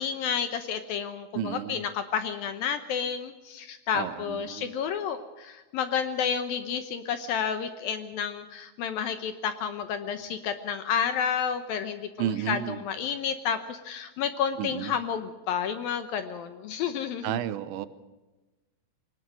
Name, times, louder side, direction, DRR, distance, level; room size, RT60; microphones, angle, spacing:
voice 1, 0.0-17.3, left 7 dB, 70° left, 9 dB, 2.4 m, -30 dB
voice 2, 1.3-1.8 3.9-4.7 12.2-12.8 14.6-15.0 17.2-17.9, right 11 dB, 85° right, 13 dB, 3.2 m, -32 dB
21.5 x 19.0 x 6.3 m, 1.2 s
omnidirectional pair, 5.0 m